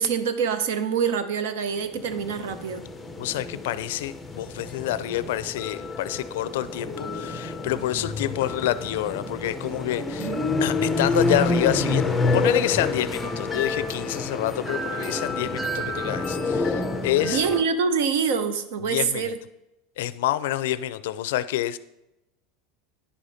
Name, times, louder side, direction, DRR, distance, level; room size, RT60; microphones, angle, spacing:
voice 1, 0.0-2.8 10.2-10.5 17.2-19.4, right 6 dB, 75° right, 11 dB, 0.7 m, -25 dB
sound 1, 1.9-17.6, left 3 dB, 10° left, 0.5 m, -28 dB
voice 2, 3.2-10.3 10.6-17.4 18.9-19.3 20.0-21.8, left 13 dB, 80° left, 15 dB, 0.4 m, -28 dB
9.9 x 5.0 x 4.1 m, 0.93 s
supercardioid pair, 165°, 0 cm